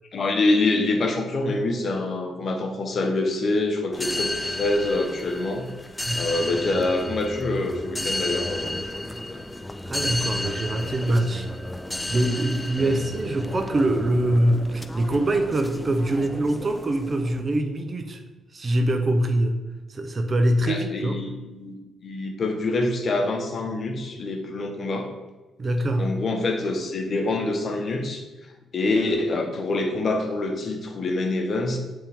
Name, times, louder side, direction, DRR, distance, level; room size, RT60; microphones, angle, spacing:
voice 1, 0.1-5.7 6.1-9.4 10.3-10.4 10.8-11.0 12.8-12.9 20.7-25.1 26.0-28.2 28.7-31.8, left 2 dB, 50° left, 3 dB, 1.0 m, -26 dB
sound 1, 3.9-17.4, left 1 dB, 10° left, 0.3 m, -33 dB
voice 2, 9.9-11.5 12.1-18.2 18.5-19.6 19.9-21.2 25.6-26.1, right 1 dB, 35° right, 6 dB, 0.7 m, -23 dB
7.3 x 3.6 x 3.5 m, 1.1 s
cardioid pair, 90°, 0 cm